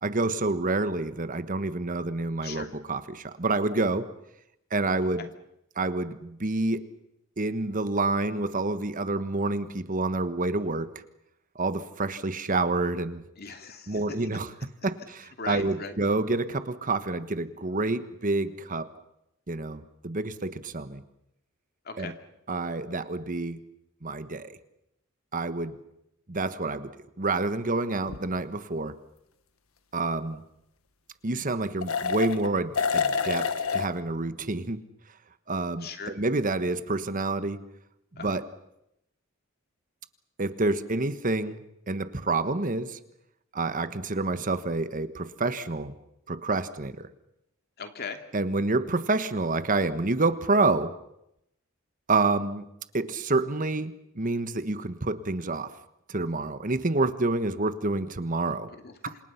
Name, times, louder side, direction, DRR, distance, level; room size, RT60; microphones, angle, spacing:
voice 1, 0.0-4.0 4.7-5.3 5.8-6.9 7.4-10.9 11.5-13.2 13.9-14.5 14.8-18.9 19.5-21.0 22.0-22.1 22.5-23.6 24.0-24.6 25.3-25.8 26.3-26.9 27.2-28.9 29.9-30.4 31.2-34.8 35.5-37.6 38.1-38.4 40.4-43.0 43.5-45.9 46.3-47.1 48.3-50.9 52.1-52.6 52.9-55.7 56.1-58.7, right 2 dB, 40° right, 12 dB, 1.3 m, -28 dB
voice 2, 13.4-14.3 15.4-16.0 21.8-22.1 35.8-36.1 38.2-38.4 47.8-48.2 58.7-59.2, left 5 dB, 50° left, 6 dB, 2.7 m, -39 dB
sound 1, 28.1-28.2 31.8-32.5 32.7-33.9, left 5 dB, 85° left, 1.5 m, -27 dB
28.0 x 27.0 x 5.8 m, 0.80 s
head